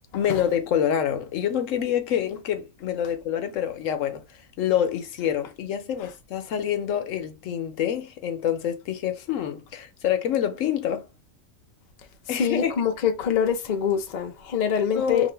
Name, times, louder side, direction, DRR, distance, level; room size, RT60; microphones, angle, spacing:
voice 1, 0.1-11.1 12.3-12.7 14.9-15.3, left 9 dB, 80° left, 1.0 m, -26 dB
voice 2, 12.3-15.3, left 7 dB, 50° left, 0.5 m, -25 dB
2.6 x 2.5 x 3.2 m
omnidirectional pair, 1.3 m